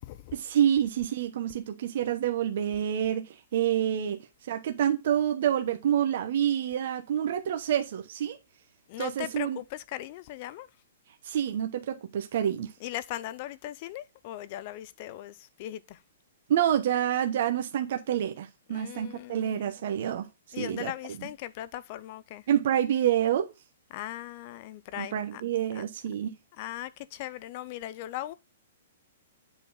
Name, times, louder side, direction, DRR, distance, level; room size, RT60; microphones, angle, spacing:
voice 1, 0.3-4.2 4.5-8.4 9.0-9.6 11.2-12.7 16.5-20.3 20.6-21.3 22.5-23.5 25.0-26.3, right 10 dB, 45° right, 0.9 m, -28 dB
voice 2, 8.9-10.7 12.8-15.3 15.6-15.8 18.7-19.5 20.5-22.4 23.9-25.1 25.8-25.9 26.6-26.9 27.2-28.3, left 14 dB, 30° left, 0.4 m, -38 dB
8.1 x 4.0 x 3.9 m
hypercardioid pair, 175°, 0 cm